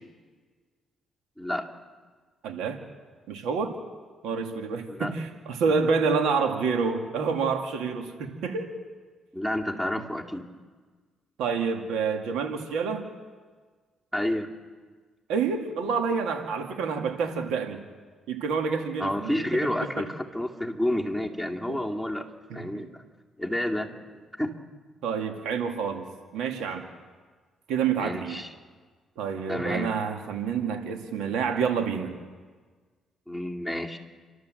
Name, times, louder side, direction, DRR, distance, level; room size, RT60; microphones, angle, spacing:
voice 1, 1.4-1.7 4.9-5.1 9.3-10.5 14.1-14.5 19.0-22.3 22.5-23.1 23.4-24.5 27.9-28.5 29.5-29.9 33.3-34.0, left 1 dB, 5° right, 2 dB, 2.3 m, -30 dB
voice 2, 2.4-2.8 3.3-3.7 4.2-8.7 11.4-13.1 15.3-17.8 18.3-19.7 20.0-20.1 21.7-21.8 22.5-22.9 25.0-26.0 26.3-26.9 27.7-28.4 29.2-32.2, right 5 dB, 90° right, 4 dB, 2.3 m, -28 dB
29.5 x 12.5 x 7.7 m, 1.5 s
cardioid pair, 90°, 0 cm